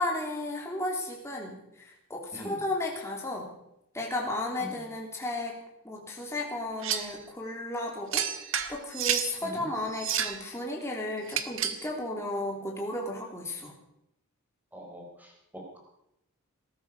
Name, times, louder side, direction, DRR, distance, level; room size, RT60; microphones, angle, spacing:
voice 1, 0.0-3.5 3.9-5.6 5.8-8.3 8.7-13.7, left 2 dB, 10° left, -1 dB, 3.1 m, -34 dB
sound 1, 6.8-7.2 8.1-9.3 9.9-10.4 11.3-11.9, right 8 dB, 60° right, 1.3 m, -30 dB
voice 2, 14.7-15.8, right 1 dB, 10° right, 0 dB, 4.3 m, -43 dB
20.0 x 13.0 x 5.5 m, 0.81 s
head